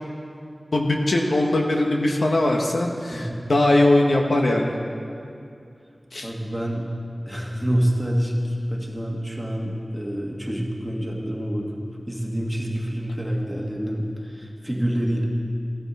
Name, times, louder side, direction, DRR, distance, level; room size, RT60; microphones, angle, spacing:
voice 1, 0.7-4.7 6.1-6.3, left 1 dB, 80° left, 1 dB, 1.1 m, -20 dB
voice 2, 3.1-3.5 6.2-6.9 7.3-15.2, equal, 5° right, -2 dB, 1.9 m, -27 dB
16.0 x 11.5 x 4.2 m, 2.5 s
wide cardioid pair, 75°, 0 cm